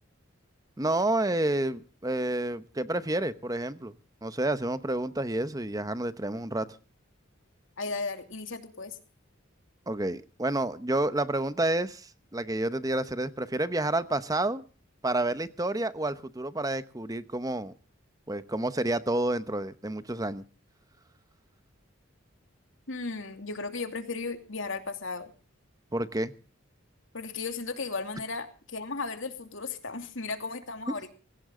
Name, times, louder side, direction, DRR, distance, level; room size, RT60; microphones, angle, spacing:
voice 1, 0.8-3.9 4.2-6.7 9.9-14.6 15.0-17.7 18.3-20.4 25.9-26.3, right 1 dB, 15° right, 13 dB, 0.9 m, -29 dB
voice 2, 7.8-9.0 22.9-25.3 27.1-31.1, left 4 dB, 70° left, 6 dB, 2.7 m, -35 dB
20.5 x 17.5 x 3.8 m, 0.36 s
head